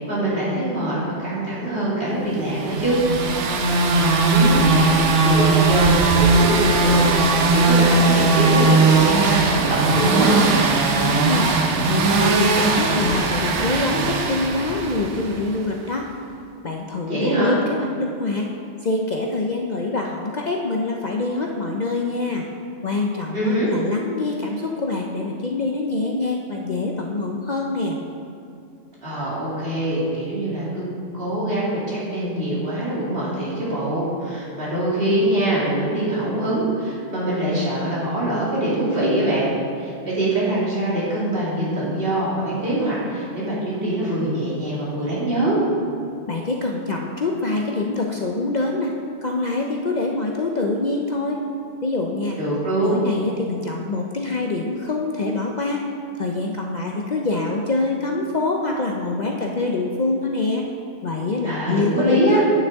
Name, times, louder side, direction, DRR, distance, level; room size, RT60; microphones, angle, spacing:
voice 1, 0.1-3.0 3.3-10.4 17.1-17.6 23.3-23.7 29.0-30.8 31.1-39.5 39.8-45.6 52.4-53.0 61.4-62.4, right 1 dB, 50° right, -8 dB, 2.7 m, -23 dB
sound 1, 2.6-15.5, right 3 dB, 70° right, 1.1 m, -19 dB
voice 2, 10.9-11.5 11.9-16.1 16.6-18.5 18.8-22.4 22.8-28.0 46.3-48.9 49.2-51.4 51.8-52.4 52.8-55.8 56.1-60.6 61.0-62.5, left 3 dB, 45° left, 0 dB, 0.6 m, -25 dB
9.1 x 9.0 x 3.6 m, 2.5 s
omnidirectional pair, 1.3 m